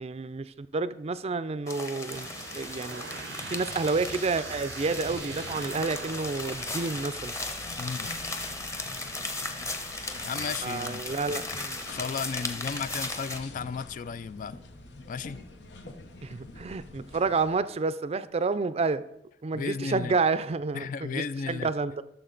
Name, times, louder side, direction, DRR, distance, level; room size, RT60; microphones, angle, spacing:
voice 1, 0.0-3.0 3.5-7.4 10.6-11.8 16.2-19.0 19.4-22.0, right 4 dB, 35° right, 0.4 m, -30 dB
sound 1, 1.7-13.4, left 2 dB, 15° left, 0.9 m, -36 dB
sound 2, 2.1-7.1, right 5 dB, 90° right, 0.7 m, -42 dB
sound 3, 4.9-17.6, left 2 dB, 85° left, 1.0 m, -47 dB
voice 2, 7.8-8.1 10.2-11.0 11.9-14.6 15.1-15.4 19.5-20.1 20.7-21.7, left 5 dB, 50° left, 0.3 m, -34 dB
13.5 x 6.7 x 3.9 m
head